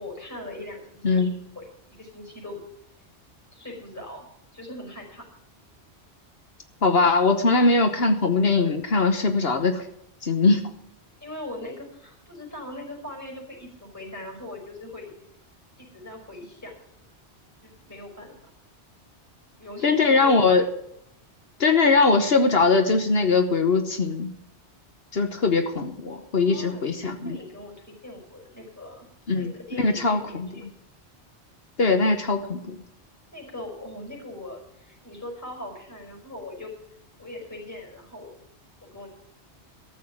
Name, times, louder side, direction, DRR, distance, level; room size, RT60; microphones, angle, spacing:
voice 1, 0.0-1.3 1.6-2.6 3.5-4.2 4.5-5.3 11.2-15.1 15.8-16.7 17.6-18.4 19.6-20.6 26.4-26.8 27.1-29.1 29.4-30.6 33.3-36.7 37.2-38.3 38.8-39.1, left 2 dB, 15° left, 0 dB, 5.4 m, -40 dB
voice 2, 1.0-1.3 6.8-9.9 10.2-10.7 19.8-20.6 21.6-24.3 25.1-27.4 29.3-30.5 31.8-32.8, left 3 dB, 60° left, 7 dB, 1.4 m, -21 dB
14.0 x 7.1 x 8.8 m, 0.76 s
omnidirectional pair, 1.2 m